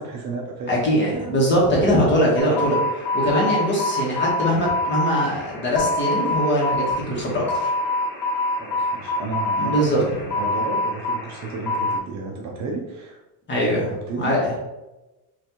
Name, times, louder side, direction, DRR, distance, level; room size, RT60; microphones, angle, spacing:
voice 1, 0.0-1.9 8.6-13.2 13.5-14.4, right 3 dB, 40° right, 0 dB, 0.6 m, -32 dB
voice 2, 0.7-7.7 9.6-10.0 13.5-13.9 14.2-14.5, equal, 25° left, -4 dB, 1.2 m, -22 dB
sound 1, 2.4-12.0, left 2 dB, 45° left, 1.0 m, -26 dB
5.6 x 2.6 x 3.0 m, 1.0 s
cardioid pair, 175°, 43 cm